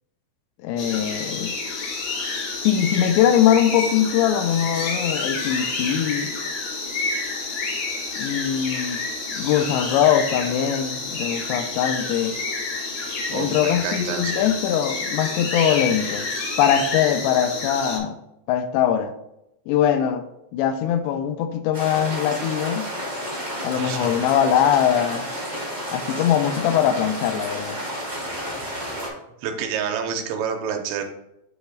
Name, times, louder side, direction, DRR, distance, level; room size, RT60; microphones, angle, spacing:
voice 1, 0.6-1.6 2.6-6.3 8.2-9.0 9.3-12.4 13.3-16.3 16.6-18.2 18.5-19.1 19.7-20.2 20.5-23.0 23.6-25.3 25.9-27.8, left 9 dB, 85° left, 2.7 m, -22 dB
sound 1, 0.8-18.0, left 3 dB, 65° left, 1.7 m, -29 dB
voice 2, 13.3-14.5 23.7-24.2 29.4-31.0, right 7 dB, 85° right, 3.0 m, -29 dB
sound 2, 21.7-29.1, equal, 30° right, 0.7 m, -31 dB
8.0 x 3.0 x 5.0 m
omnidirectional pair, 5.1 m